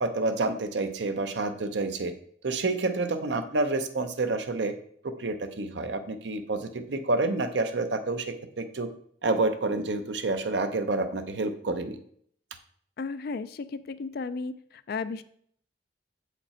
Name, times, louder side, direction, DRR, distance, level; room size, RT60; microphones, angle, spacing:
voice 1, 0.0-2.1 2.4-4.8 5.0-8.9 9.2-12.0, right 3 dB, 85° right, 8 dB, 0.7 m, -28 dB
voice 2, 13.0-15.2, left 4 dB, 60° left, 13 dB, 0.4 m, -34 dB
7.6 x 5.1 x 4.3 m, 0.64 s
head